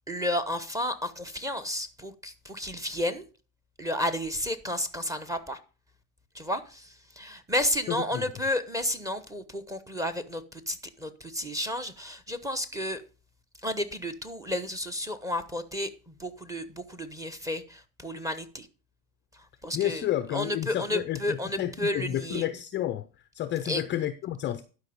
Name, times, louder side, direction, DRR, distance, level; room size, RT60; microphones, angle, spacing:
voice 1, 0.1-3.2 3.8-5.6 6.3-13.0 13.6-18.7 19.6-22.4 23.6-23.8, left 1 dB, 5° right, 0.9 m, -32 dB
voice 2, 7.9-8.2 19.7-23.1 23.3-24.6, left 12 dB, 25° left, 0.5 m, -30 dB
11.5 x 5.2 x 5.2 m
hypercardioid pair, 100°, 49 cm